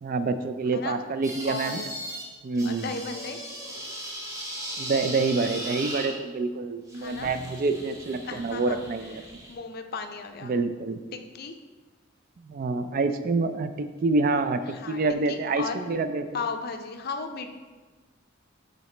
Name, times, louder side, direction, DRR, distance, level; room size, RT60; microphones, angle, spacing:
voice 1, 0.0-1.8 2.4-3.0 4.8-9.2 10.4-11.0 12.5-16.3, right 3 dB, 45° right, 10 dB, 0.3 m, -27 dB
sound 1, 1.2-2.2 2.5-6.2 6.9-9.5, equal, 15° right, 0.9 m, -38 dB
voice 2, 1.4-1.9 2.6-3.4 6.9-7.3 8.2-8.8 9.2-10.6 11.1-11.5 14.7-15.0 15.3-15.8 16.3-17.5, left 4 dB, 50° left, 6 dB, 0.5 m, -35 dB
7.7 x 4.0 x 3.2 m, 1.3 s
head